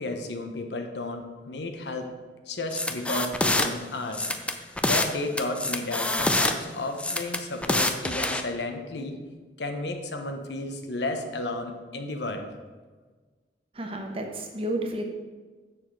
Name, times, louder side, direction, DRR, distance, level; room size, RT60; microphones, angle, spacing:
voice 1, 0.0-2.1 2.5-4.3 4.8-9.2 9.6-12.5, left 2 dB, 75° left, 5 dB, 1.1 m, -33 dB
sound 1, 2.7-3.7 4.1-5.1 5.4-6.5 7.0-8.4, left 1 dB, 5° left, 0.5 m, -26 dB
voice 2, 13.7-15.0, right 1 dB, 35° right, 3 dB, 1.1 m, -31 dB
8.6 x 6.3 x 4.7 m, 1.4 s
head